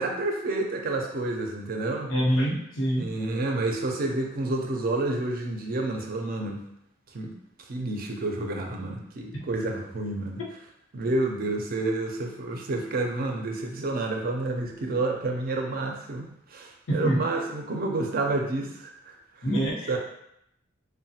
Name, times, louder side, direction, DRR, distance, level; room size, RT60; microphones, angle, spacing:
voice 1, 0.0-2.1 3.0-6.6 7.1-7.3 7.7-10.4 10.9-19.5 19.9-20.0, right 2 dB, 50° right, 2 dB, 0.4 m, -29 dB
voice 2, 2.1-3.1 9.3-9.5 16.9-17.2 19.4-20.0, equal, 90° left, -4 dB, 0.8 m, -25 dB
3.0 x 2.1 x 2.7 m, 0.77 s
head